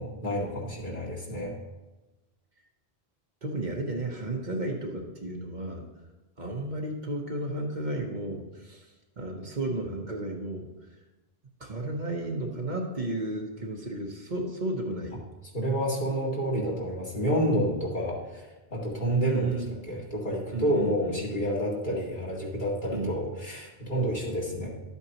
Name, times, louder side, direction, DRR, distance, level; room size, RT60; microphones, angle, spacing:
voice 1, 0.0-1.5 15.5-19.6 19.9-24.7, equal, 50° left, -4 dB, 2.4 m, -29 dB
voice 2, 3.4-5.8 6.4-8.9 9.2-10.7 11.6-15.2 19.0-19.8 20.5-21.4 22.9-23.2, right 2 dB, 50° right, 1 dB, 1.1 m, -33 dB
12.0 x 8.2 x 2.9 m, 1.1 s
omnidirectional pair, 1.1 m